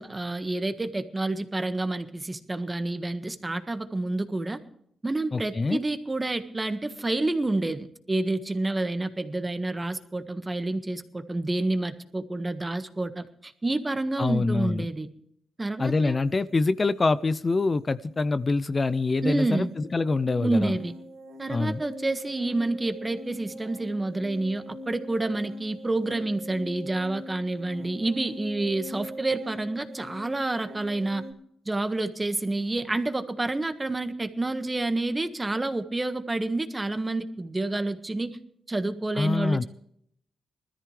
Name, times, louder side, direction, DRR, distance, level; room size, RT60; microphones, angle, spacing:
voice 1, 0.0-4.6 5.0-15.1 15.6-16.2 19.2-19.7 20.4-20.9 21.4-31.2 31.6-38.4 38.7-39.7, right 2 dB, 20° right, 9 dB, 1.5 m, -29 dB
voice 2, 5.3-5.8 14.2-14.9 15.8-20.8 21.5-21.8 39.2-39.6, left 3 dB, 35° left, 15 dB, 0.5 m, -25 dB
sound 1, 16.5-16.7 16.9-31.3, equal, 90° right, 1.8 m, -43 dB
20.5 x 13.5 x 3.3 m, 0.69 s
cardioid pair, 70°, 0 cm